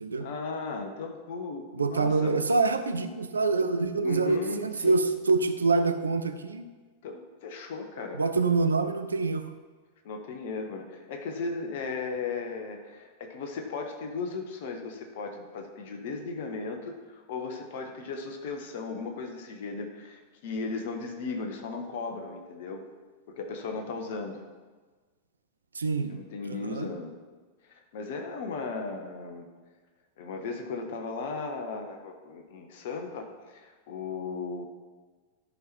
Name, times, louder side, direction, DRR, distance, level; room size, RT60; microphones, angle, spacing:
voice 1, 0.2-2.4 4.0-5.0 7.0-8.2 10.0-22.8 23.3-24.4 26.1-27.1 27.7-29.5 30.2-34.6, left 4 dB, 55° left, 4 dB, 1.4 m, -36 dB
voice 2, 1.7-6.6 8.2-9.5 25.7-26.2 26.6-26.9, right 3 dB, 75° right, 10 dB, 0.6 m, -26 dB
13.0 x 5.8 x 4.5 m, 1.4 s
figure-of-eight pair, 90°, 0 cm